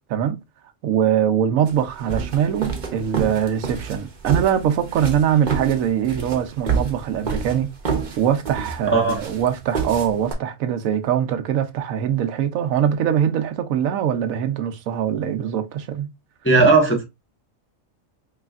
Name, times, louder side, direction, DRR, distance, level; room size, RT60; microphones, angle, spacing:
voice 1, 0.8-7.7 8.2-16.1, right 9 dB, 80° right, 1.0 m, -22 dB
sound 1, 1.7-10.3, right 6 dB, 40° right, 0.8 m, -28 dB
voice 2, 16.4-17.0, right 3 dB, 10° left, 0.6 m, -16 dB
4.8 x 3.1 x 2.3 m
omnidirectional pair, 1.4 m